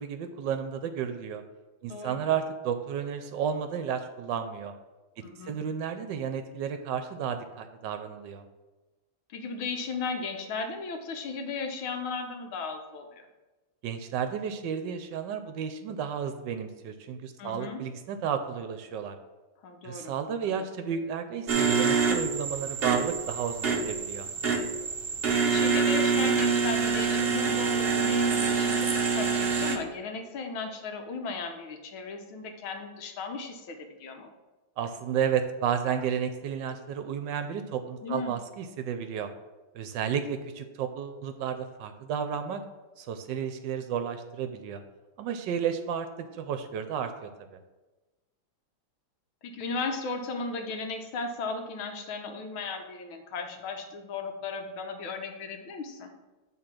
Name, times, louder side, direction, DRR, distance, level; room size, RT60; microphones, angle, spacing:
voice 1, 0.0-1.4 1.8-4.7 5.4-8.4 13.8-19.2 19.8-24.3 34.8-39.3 39.7-42.6 43.0-44.8 45.2-47.6, right 7 dB, 75° right, 8 dB, 1.2 m, -32 dB
voice 2, 1.9-2.2 5.2-5.6 9.3-13.2 17.4-17.9 19.6-20.2 20.5-20.6 25.3-34.3 38.0-38.4 49.4-56.1, left 4 dB, 85° left, 4 dB, 1.8 m, -36 dB
sound 1, 21.5-29.8, right 5 dB, 55° right, 0.6 m, -26 dB
8.5 x 3.8 x 6.0 m, 1.2 s
omnidirectional pair, 2.2 m